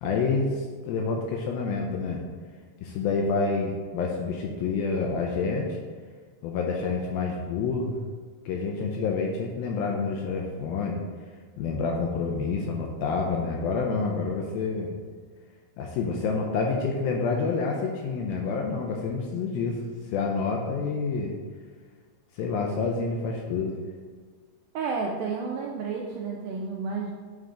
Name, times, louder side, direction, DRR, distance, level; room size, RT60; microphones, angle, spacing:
voice 1, 0.0-2.2 2.8-5.8 6.4-7.9 8.5-11.0 11.6-14.9 15.8-19.8 20.1-21.4 22.3-23.8, left 4 dB, 80° left, 1 dB, 2.2 m, -28 dB
voice 2, 24.7-27.1, right 4 dB, 85° right, -1 dB, 2.1 m, -31 dB
8.9 x 3.4 x 3.7 m, 1.5 s
omnidirectional pair, 4.6 m